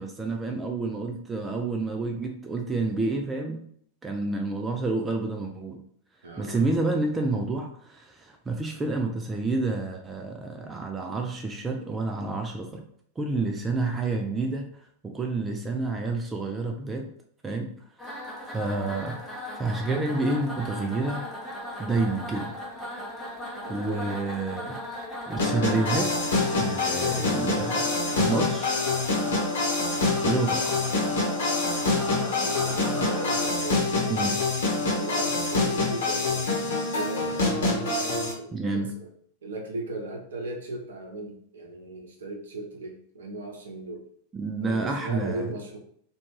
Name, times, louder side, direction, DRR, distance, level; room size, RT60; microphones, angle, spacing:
voice 1, 0.0-3.7 4.0-5.8 6.4-12.8 13.2-14.7 15.0-17.1 17.4-17.7 18.5-21.2 21.8-22.6 23.7-24.8 25.3-26.2 26.5-28.8 30.2-30.8 34.1-34.4 38.5-38.9 44.3-45.5, right 3 dB, 15° right, 3 dB, 0.3 m, -29 dB
voice 2, 6.2-6.7 23.6-24.7 32.2-34.4 34.8-36.5 36.9-39.1 39.4-44.0 44.6-45.8, right 2 dB, 65° right, 1 dB, 0.6 m, -38 dB
sound 1, 18.0-33.5, left 1 dB, 10° left, 0.7 m, -37 dB
sound 2, 25.4-38.3, left 3 dB, 60° left, 0.8 m, -26 dB
2.4 x 2.2 x 3.1 m, 0.63 s
figure-of-eight pair, 90°, 0 cm